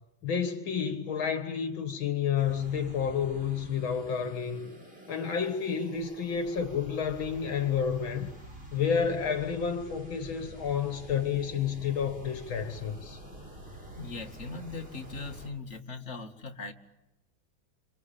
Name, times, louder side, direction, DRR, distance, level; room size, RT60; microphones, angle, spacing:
voice 1, 0.2-4.7 5.1-8.3 8.7-13.2, left 7 dB, 75° left, 2.3 m, -30 dB
sound 1, 2.3-15.5, right 1 dB, 25° right, 5.4 m, -47 dB
voice 2, 14.0-16.7, left 3 dB, 35° left, 2.4 m, -40 dB
29.5 x 26.5 x 7.1 m
omnidirectional pair, 2.2 m